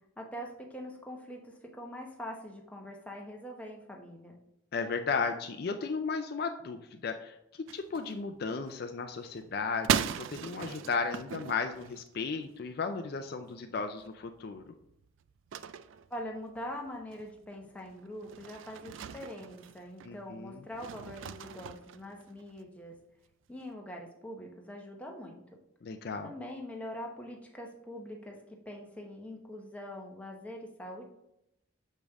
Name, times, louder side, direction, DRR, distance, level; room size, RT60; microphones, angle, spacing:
voice 1, 0.2-4.4 16.1-23.0 23.5-25.4 26.2-31.1, equal, 5° left, 0 dB, 0.9 m, -43 dB
voice 2, 4.7-14.6 20.0-20.6 25.8-26.3, left 4 dB, 50° left, 6 dB, 0.4 m, -35 dB
sound 1, 7.7-8.7 9.0-12.6 13.1-13.2 13.5-13.6 13.8-20.2 20.7-22.6, right 8 dB, 70° right, 0.3 m, -38 dB
6.5 x 5.2 x 3.5 m, 0.83 s
head